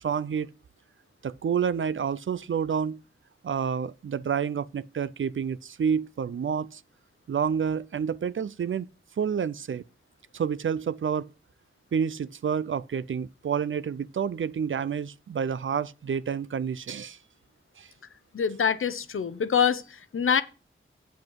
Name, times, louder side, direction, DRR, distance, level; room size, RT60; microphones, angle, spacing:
voice 1, 0.0-0.5 1.2-3.0 3.4-6.8 7.3-8.9 9.2-9.8 10.3-11.3 11.9-17.2 17.8-17.9, right 7 dB, 70° right, 0.5 m, -29 dB
voice 2, 18.3-20.4, left 7 dB, 75° left, 0.7 m, -25 dB
7.8 x 7.3 x 4.6 m
cardioid pair, 50°, 21 cm